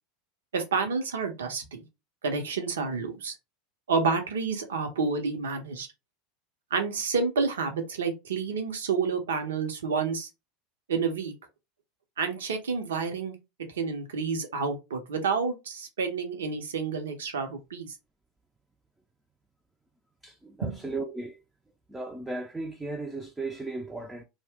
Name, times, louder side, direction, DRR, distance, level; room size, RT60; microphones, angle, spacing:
voice 1, 0.5-1.8 2.2-3.3 3.9-5.9 6.7-10.3 10.9-11.3 12.2-13.3 13.7-17.9 20.6-20.8, right 5 dB, 70° right, 0.6 m, -29 dB
voice 2, 20.2-21.4 21.9-24.2, right 2 dB, 10° right, 0.4 m, -36 dB
2.7 x 2.0 x 3.3 m
figure-of-eight pair, 80°, 0 cm